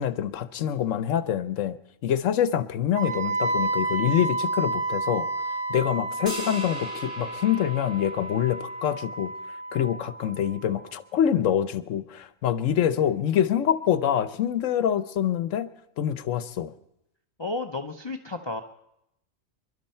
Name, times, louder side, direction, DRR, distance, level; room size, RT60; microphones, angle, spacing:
voice 1, 0.0-1.8 2.0-5.3 5.7-9.3 9.7-15.7 16.0-16.7, left 10 dB, 80° left, 13 dB, 1.1 m, -25 dB
Wind instrument woodwind instrument, 2.9-10.9, right 2 dB, 55° right, 1.4 m, -31 dB
sound 1, 6.3-8.8, equal, 40° right, 6.7 m, -40 dB
voice 2, 17.4-18.6, left 2 dB, 30° left, 5 dB, 0.5 m, -32 dB
27.5 x 11.5 x 4.4 m, 0.84 s
omnidirectional pair, 1.3 m